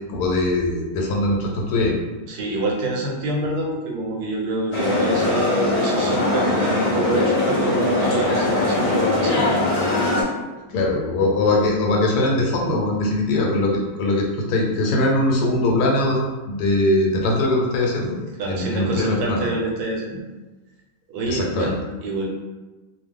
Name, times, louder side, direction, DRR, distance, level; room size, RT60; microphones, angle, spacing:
voice 1, 0.1-1.9 10.7-16.2 16.5-18.2 18.5-19.4 21.3-21.7, left 2 dB, 90° left, -1 dB, 1.1 m, -21 dB
voice 2, 2.3-9.6 18.4-20.2 21.1-22.3, right 2 dB, 85° right, 0 dB, 1.1 m, -26 dB
sound 1, 4.7-10.2, left 2 dB, 50° left, 0.4 m, -21 dB
2.7 x 2.0 x 3.5 m, 1.2 s
omnidirectional pair, 1.6 m